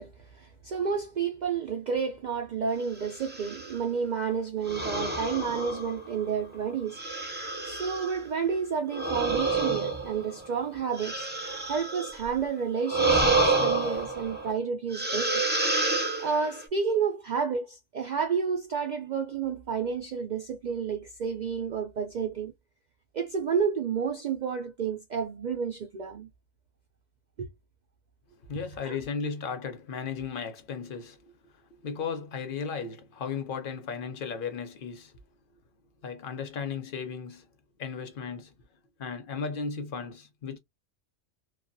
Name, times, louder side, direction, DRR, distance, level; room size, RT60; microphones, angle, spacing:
voice 1, 0.0-7.0 7.4-11.3 11.7-15.3 16.2-22.5 23.1-26.3 27.4-27.5 28.8-29.0, right 6 dB, 85° right, 0.4 m, -30 dB
sound 1, 3.1-3.8 4.7-6.3 6.9-8.2 8.9-12.3 12.8-14.5 14.9-16.6, right 3 dB, 15° right, 0.4 m, -29 dB
voice 2, 28.5-35.1 36.0-37.5 37.8-38.5 39.0-40.6, left 5 dB, 55° left, 0.7 m, -35 dB
2.3 x 2.2 x 2.5 m
omnidirectional pair, 1.3 m